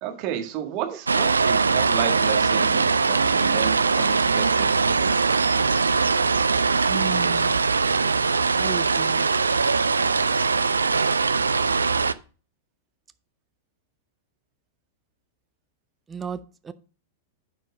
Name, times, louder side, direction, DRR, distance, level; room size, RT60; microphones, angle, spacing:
voice 1, 0.0-5.1, right 10 dB, 40° right, 4 dB, 1.7 m, -32 dB
sound 1, 1.1-12.1, right 4 dB, 75° right, 0.4 m, -21 dB
voice 2, 6.9-7.7 8.5-9.3 16.1-16.7, right 6 dB, 15° right, 13 dB, 0.6 m, -35 dB
9.9 x 5.2 x 5.0 m, 0.36 s
figure-of-eight pair, 95°, 0 cm